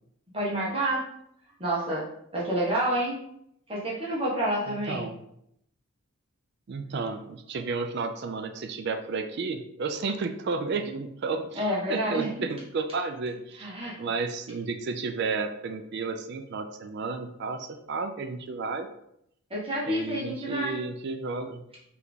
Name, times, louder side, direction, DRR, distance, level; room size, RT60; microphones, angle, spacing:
voice 1, 0.3-1.0 1.6-2.0 2.3-3.2 3.7-5.1 11.5-12.3 13.6-13.9 19.5-20.8, right 1 dB, 25° right, -7 dB, 1.0 m, -28 dB
voice 2, 4.7-5.2 6.7-13.7 14.0-18.9 19.8-21.6, right 4 dB, 50° right, 7 dB, 0.3 m, -32 dB
3.4 x 3.2 x 3.9 m, 0.75 s
head